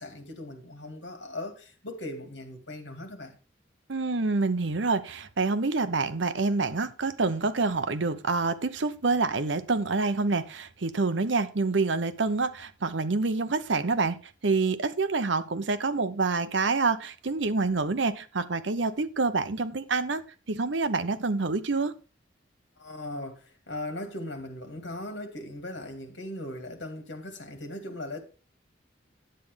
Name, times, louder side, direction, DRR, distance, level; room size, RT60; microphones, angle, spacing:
voice 1, 0.0-3.4 22.8-28.2, left 1 dB, 75° left, 2.3 m, -39 dB
voice 2, 3.9-22.0, right 3 dB, 80° right, 0.8 m, -27 dB
10.0 x 8.5 x 3.4 m
head